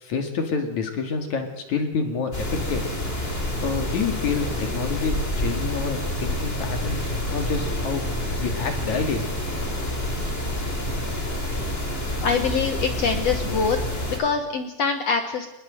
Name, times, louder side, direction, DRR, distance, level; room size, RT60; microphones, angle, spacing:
voice 1, 0.0-2.8 3.6-8.0 8.4-9.2, left 5 dB, 50° left, 5 dB, 3.2 m, -28 dB
sound 1, 2.3-14.2, left 1 dB, 15° left, 3.8 m, -28 dB
voice 2, 12.2-13.8 14.1-15.5, left 5 dB, 80° left, 6 dB, 1.4 m, -24 dB
25.0 x 20.5 x 7.7 m, 1.0 s
omnidirectional pair, 4.9 m